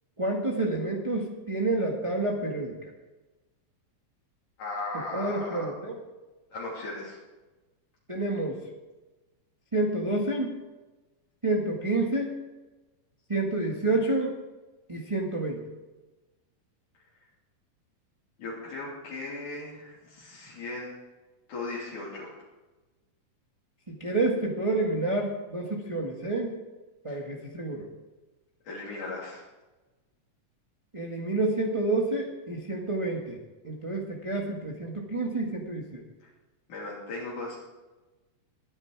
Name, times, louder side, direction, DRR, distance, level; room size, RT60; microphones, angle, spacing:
voice 1, 0.2-2.8 5.1-6.0 8.1-8.6 9.7-10.5 11.4-12.3 13.3-14.4 14.9-15.6 23.9-26.6 27.0-27.9 30.9-33.4 33.6-36.0, right 2 dB, 20° right, -1 dB, 0.9 m, -29 dB
voice 2, 4.6-5.7 6.5-7.2 18.4-21.0 21.5-22.3 27.1-27.2 28.6-29.4 36.2-36.3 36.7-37.6, left 2 dB, 80° left, -6 dB, 4.6 m, -37 dB
22.0 x 9.9 x 4.8 m, 1.1 s
omnidirectional pair, 3.6 m